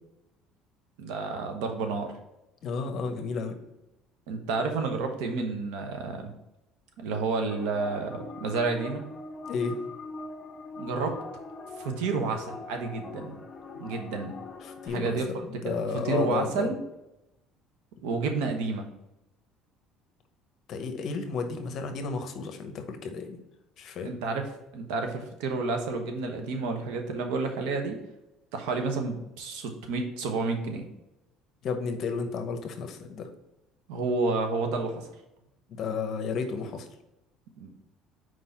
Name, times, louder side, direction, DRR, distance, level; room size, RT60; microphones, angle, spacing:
voice 1, 1.0-2.1 4.3-6.3 7.0-9.0 10.8-11.1 11.8-13.4 13.8-14.4 14.8-15.3 15.6-15.7 16.0-16.8 18.0-18.8 24.0-28.0 28.5-30.9 33.9-35.1 37.6-37.7, right 3 dB, 90° right, 4 dB, 1.0 m, -30 dB
voice 2, 2.6-3.6 9.5-9.8 14.6-16.8 20.7-23.4 23.8-24.1 31.6-33.3 35.7-36.9, left 5 dB, 50° left, 6 dB, 0.9 m, -32 dB
sound 1, 7.5-14.9, left 3 dB, 25° left, 1.1 m, -42 dB
4.7 x 4.0 x 5.7 m, 0.92 s
cardioid pair, 125°, 0 cm